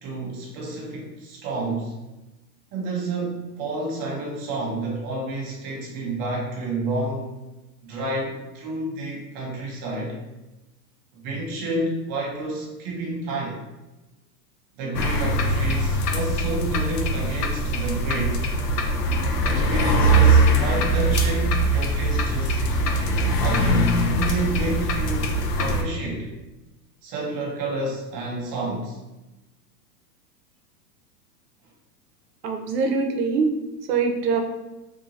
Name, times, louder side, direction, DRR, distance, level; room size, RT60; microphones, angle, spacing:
voice 1, 0.0-2.0 2.7-7.4 7.8-10.2 11.1-13.6 14.8-18.4 19.4-22.6 23.4-26.3 27.0-29.0, right 2 dB, 20° right, -3 dB, 0.4 m, -30 dB
sound 1, 14.9-25.8, right 1 dB, 75° left, 0.6 m, -21 dB
voice 2, 32.4-33.5 33.9-34.4, right 4 dB, 75° right, 4 dB, 0.7 m, -23 dB
2.7 x 2.7 x 2.5 m, 1.0 s
hypercardioid pair, 120°, 49 cm